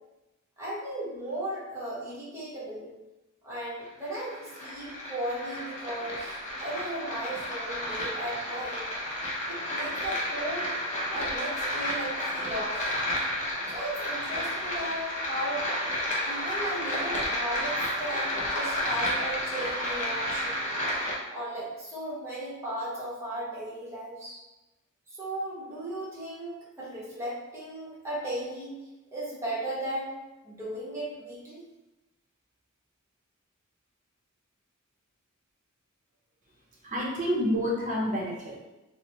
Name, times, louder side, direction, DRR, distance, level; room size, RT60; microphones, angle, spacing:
voice 1, 0.6-2.9 3.4-8.8 9.5-10.7 11.1-12.9 13.7-15.7 16.2-20.7 21.3-24.4 25.1-28.8 29.1-30.1 30.4-31.6, right 1 dB, 15° right, -9 dB, 0.9 m, -36 dB
sound 1, 3.8-21.2, equal, 35° left, 0.6 m, -31 dB
voice 2, 36.8-38.6, equal, 35° right, -4 dB, 0.7 m, -28 dB
3.1 x 2.1 x 2.9 m, 1.0 s
head